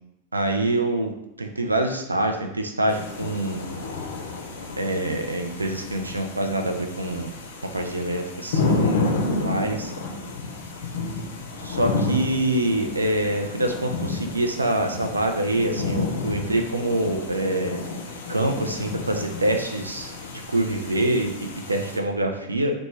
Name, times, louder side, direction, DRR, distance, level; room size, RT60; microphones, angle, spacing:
voice 1, 0.3-1.1 1.4-3.7 4.8-7.3 7.7-9.0 9.4-9.9 11.6-17.8 18.3-20.1 20.5-22.7, right 1 dB, 80° right, 4 dB, 0.3 m, -25 dB
sound 1, 2.9-22.0, left 3 dB, 60° left, 0.4 m, -31 dB
3.0 x 2.1 x 3.2 m, 0.82 s
figure-of-eight pair, 90°, 0 cm